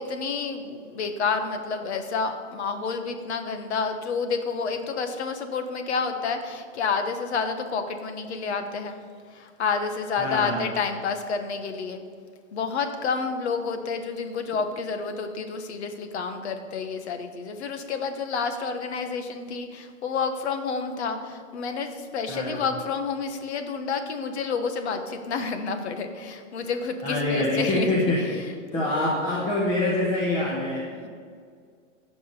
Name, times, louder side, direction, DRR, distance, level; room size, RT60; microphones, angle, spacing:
voice 1, 0.0-9.0 9.3-12.0 12.5-28.5 30.9-31.1, left 5 dB, 60° left, 7 dB, 1.4 m, -29 dB
voice 2, 10.2-10.6 22.3-22.6 27.0-28.2 28.7-30.8, left 1 dB, 15° left, -6 dB, 1.6 m, -25 dB
15.0 x 5.3 x 6.8 m, 2.1 s
hypercardioid pair, 170°, 38 cm